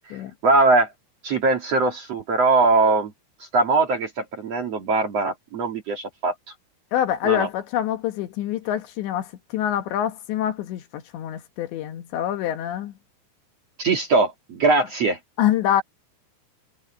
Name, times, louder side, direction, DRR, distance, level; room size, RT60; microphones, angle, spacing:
voice 1, 0.4-0.9 1.2-3.1 3.5-6.3 7.2-7.5 13.8-15.2, right 3 dB, 50° right, 1.9 m, -21 dB
voice 2, 6.9-12.9 15.4-15.8, left 11 dB, 70° left, 3.5 m, -25 dB
omnidirectional pair, 5.6 m